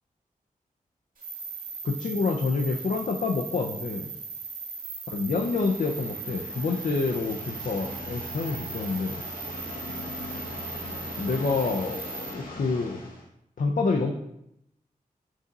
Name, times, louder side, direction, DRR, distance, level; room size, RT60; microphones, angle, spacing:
sound 1, 1.2-12.3, right 4 dB, 75° right, 1.7 m, -38 dB
voice 1, 1.8-4.1 5.1-9.2 11.2-13.0 13.6-14.1, left 4 dB, 70° left, 2 dB, 0.6 m, -27 dB
sound 2, 5.2-13.3, left 1 dB, 90° left, 1.1 m, -40 dB
6.1 x 4.1 x 4.0 m, 0.79 s
wide cardioid pair, 85°, 14 cm